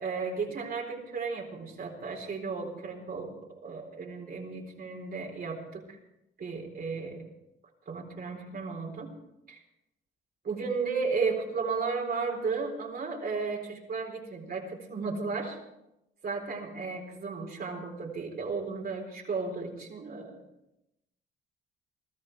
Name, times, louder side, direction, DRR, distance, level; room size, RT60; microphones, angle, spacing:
voice 1, 0.0-6.0 6.4-7.2 7.9-9.1 9.5-9.6 10.4-15.6 16.2-20.4, right 4 dB, 50° right, 0 dB, 4.2 m, -34 dB
22.5 x 13.0 x 4.7 m, 0.86 s
cardioid pair, 90°, 20 cm